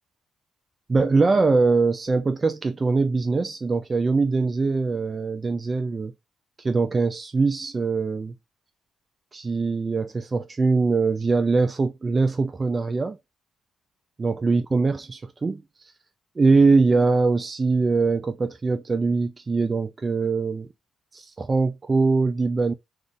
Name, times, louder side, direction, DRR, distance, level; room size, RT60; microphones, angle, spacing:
voice 1, 0.9-6.1 6.6-8.3 9.3-13.2 14.2-15.6 16.4-20.7 21.1-22.7, right 4 dB, 30° right, 0.3 m, -22 dB
2.5 x 2.4 x 3.5 m
cardioid pair, 90°, 0 cm